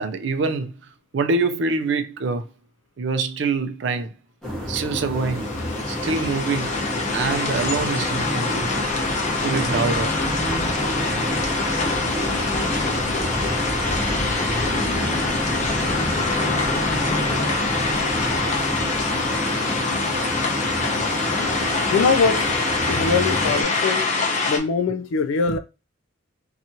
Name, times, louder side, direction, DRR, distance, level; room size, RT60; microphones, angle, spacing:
voice 1, 0.0-2.5 3.0-4.1 4.7-5.5 5.9-6.8 7.1-8.7 9.4-10.2, right 4 dB, 60° right, 0.4 m, -25 dB
sound 1, 4.4-23.6, equal, ahead, 0.8 m, -27 dB
sound 2, 5.1-24.6, left 3 dB, 35° left, 0.5 m, -25 dB
voice 2, 21.9-22.5 22.9-24.1 24.5-25.6, left 5 dB, 80° left, 0.3 m, -22 dB
2.8 x 2.4 x 2.7 m
head